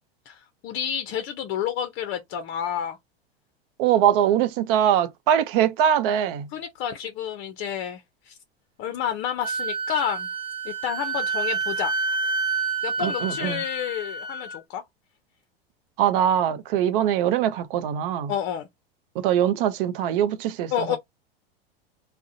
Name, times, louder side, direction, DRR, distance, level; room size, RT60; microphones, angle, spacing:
voice 1, 0.3-3.0 6.5-8.4 8.8-10.3 10.6-12.0 12.8-14.8 18.3-18.7 20.7-21.0, left 9 dB, 40° left, 0.6 m, -30 dB
voice 2, 3.8-6.5 13.0-13.6 16.0-18.3 19.2-21.0, right 10 dB, 60° right, 0.6 m, -22 dB
Wind instrument woodwind instrument, 9.4-14.6, right 4 dB, 15° right, 0.7 m, -28 dB
2.4 x 2.1 x 2.6 m
hypercardioid pair, 95°, 31 cm